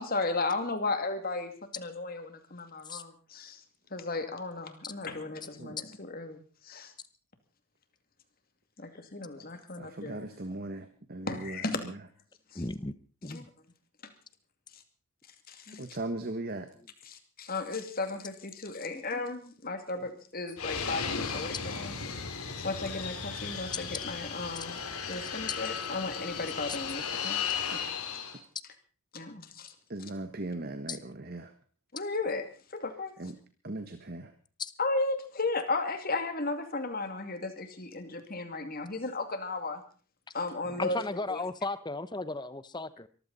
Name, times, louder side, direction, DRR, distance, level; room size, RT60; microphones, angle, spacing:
voice 1, 0.0-3.6 3.9-6.9 8.8-10.2 11.3-11.9 12.5-12.6 13.2-13.4 15.5-15.9 17.1-22.0 22.6-24.8 25.1-27.4 27.7-27.8 29.1-29.7 31.9-32.5 32.7-33.1 34.8-39.8 40.3-41.0 41.3-41.4, left 3 dB, 40° left, 7 dB, 2.4 m, -35 dB
voice 2, 9.8-12.0 15.8-16.7 29.9-31.5 33.2-33.4 33.6-34.3 40.6-40.8, right 2 dB, 45° right, 8 dB, 1.3 m, -38 dB
voice 3, 12.5-12.9 13.2-13.5 18.9-19.0 25.5-25.6 30.9-31.0 34.6-34.7 40.8-43.1, left 3 dB, 20° left, 14 dB, 0.8 m, -35 dB
Fixed-wing aircraft airplane, 20.6-28.4, left 6 dB, 80° left, 2.9 m, -35 dB
23.5 x 14.5 x 4.1 m, 0.39 s
head